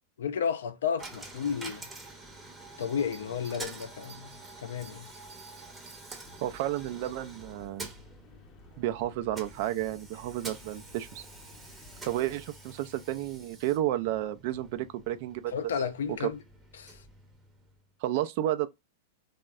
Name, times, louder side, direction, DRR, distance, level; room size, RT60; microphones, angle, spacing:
voice 1, 0.2-1.9 2.8-5.1 15.5-16.4 16.8-17.0, left 7 dB, 80° left, 0.4 m, -32 dB
Coin (dropping), 1.0-17.9, right 2 dB, 15° right, 0.7 m, -48 dB
Bell, 2.8-7.1 7.6-7.7, right 5 dB, 85° right, 0.7 m, -55 dB
sound 1, 6.2-12.5, left 4 dB, 40° left, 0.6 m, -55 dB
voice 2, 6.4-7.9 8.8-11.3 12.0-15.5 18.0-18.7, right 13 dB, 55° right, 0.3 m, -31 dB
3.3 x 2.1 x 2.3 m
hypercardioid pair, 115°, 0 cm